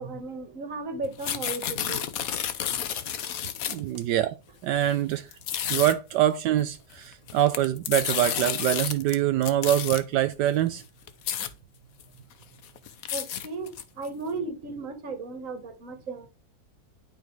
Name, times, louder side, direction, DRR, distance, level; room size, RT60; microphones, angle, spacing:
voice 1, 0.0-2.0 2.7-2.8 13.1-16.3, right 3 dB, 50° right, 1.9 m, -35 dB
sound 1, 1.0-4.0 4.8-4.9 5.3-6.0 7.1-9.1 9.4-10.0 10.7-10.8 11.1-11.5 12.0-12.1 12.4-14.1, left 9 dB, 60° left, 1.2 m, -31 dB
voice 2, 3.7-4.4 4.6-5.3 5.7-10.8, right 12 dB, 80° right, 1.2 m, -24 dB
10.5 x 5.2 x 4.6 m
omnidirectional pair, 1.8 m